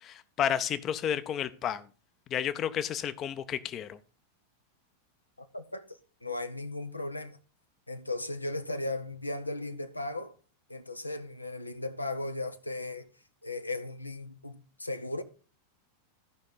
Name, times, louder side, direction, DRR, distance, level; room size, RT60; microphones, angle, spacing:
voice 1, 0.0-1.8 2.3-4.0, left 9 dB, 30° left, 0.6 m, -31 dB
voice 2, 5.4-5.8 6.2-7.4 7.9-10.3 10.7-13.1 13.4-15.2, left 2 dB, 85° left, 0.6 m, -36 dB
14.0 x 5.3 x 3.9 m
figure-of-eight pair, 90°, 0 cm